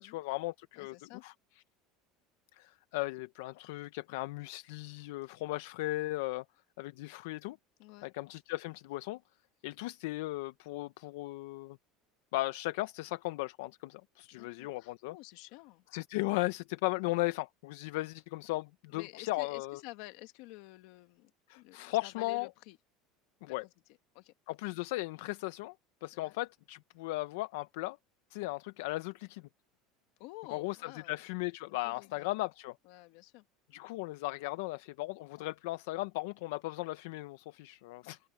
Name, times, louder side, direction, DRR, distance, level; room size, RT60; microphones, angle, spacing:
voice 1, 0.0-0.9 1.2-1.3 2.5-6.4 6.8-7.6 8.0-9.2 9.6-11.8 12.3-15.1 15.9-19.8 21.5-22.5 23.4-23.6 24.5-25.7 26.0-28.0 28.3-29.4 30.5-32.8 33.7-38.2, left 20 dB, 75° left, 0.5 m, -36 dB
voice 2, 0.7-1.2 7.8-8.1 14.3-15.9 16.9-17.2 18.9-22.8 23.5-23.7 24.1-24.3 26.1-26.4 30.2-31.2 31.8-32.3 32.8-33.5, left 20 dB, 55° left, 1.8 m, -51 dB
open air
cardioid pair, 175°, 0 cm